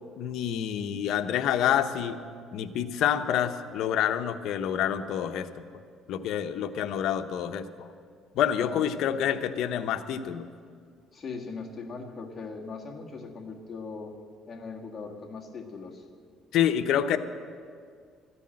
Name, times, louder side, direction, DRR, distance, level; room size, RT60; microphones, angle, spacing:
voice 1, 0.2-2.2 2.5-5.5 6.1-7.9 8.3-10.5 16.5-17.2, left 10 dB, 70° left, 9 dB, 0.8 m, -27 dB
voice 2, 8.6-8.9 11.1-14.1 14.5-16.0, left 4 dB, 30° left, 0 dB, 1.8 m, -39 dB
14.5 x 9.9 x 7.6 m, 2.1 s
cardioid pair, 120°, 0 cm